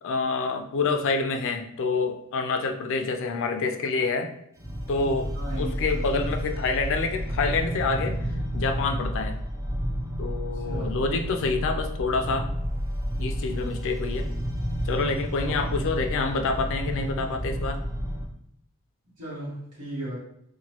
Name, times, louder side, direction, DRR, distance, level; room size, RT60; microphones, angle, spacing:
voice 1, 0.0-4.3 4.9-8.2 8.5-9.4 10.2-12.5 13.2-14.3 14.8-17.8, left 4 dB, 60° left, 6 dB, 0.4 m, -27 dB
sound 1, 4.6-18.2, equal, 15° right, 0.4 m, -31 dB
voice 2, 5.3-5.9 6.2-6.4 10.5-11.0 13.5-14.0 15.4-15.7 19.2-20.2, right 1 dB, 80° right, -8 dB, 1.4 m, -37 dB
3.0 x 2.2 x 2.9 m, 0.75 s
head